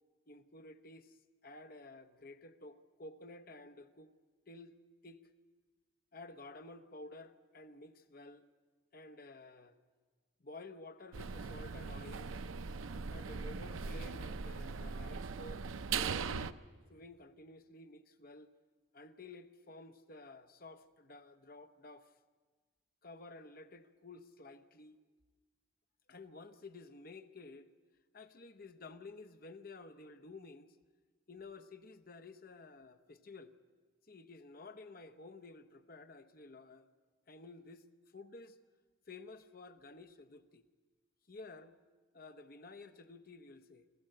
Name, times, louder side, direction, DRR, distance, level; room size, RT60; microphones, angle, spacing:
voice 1, 0.3-1.2 1.4-4.1 4.5-4.7 5.0-5.2 6.1-8.5 8.9-9.8 10.4-12.3 13.1-16.5 16.9-18.5 18.9-22.1 23.0-25.0 26.1-27.7 28.1-30.8 31.3-33.5 34.1-36.9 37.3-37.9 38.1-38.6 39.1-40.6 41.3-41.8 42.1-43.9, left 2 dB, 45° left, 9 dB, 0.9 m, -52 dB
Hallway of University in silence, 11.1-16.5, right 5 dB, 85° right, 0.6 m, -40 dB
26.0 x 14.0 x 7.8 m, 1.4 s
head